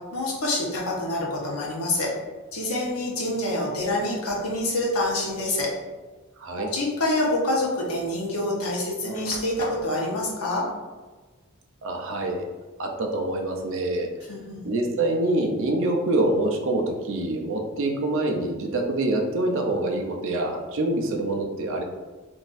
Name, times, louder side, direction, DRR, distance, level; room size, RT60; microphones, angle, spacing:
voice 1, 0.1-2.1 2.5-5.7 6.6-10.7 14.3-14.7, left 1 dB, 75° left, -3 dB, 0.9 m, -26 dB
sound 1, 4.3-4.6 5.6-5.7 7.1-7.2 7.5-8.6 8.9-9.9, left 1 dB, 35° left, 0.4 m, -39 dB
voice 2, 6.4-6.7 11.8-12.5 12.8-14.1 14.6-21.8, right 2 dB, 60° right, 2 dB, 0.5 m, -25 dB
3.8 x 2.6 x 2.5 m, 1.3 s
head